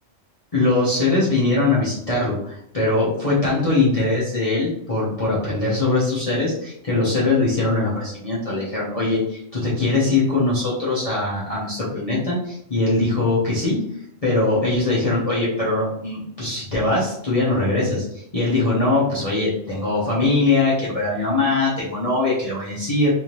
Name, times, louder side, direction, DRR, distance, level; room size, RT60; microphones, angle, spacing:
voice 1, 0.5-13.8 14.2-23.1, left 2 dB, 30° left, -8 dB, 1.0 m, -21 dB
3.4 x 2.7 x 3.0 m, 0.72 s
omnidirectional pair, 1.3 m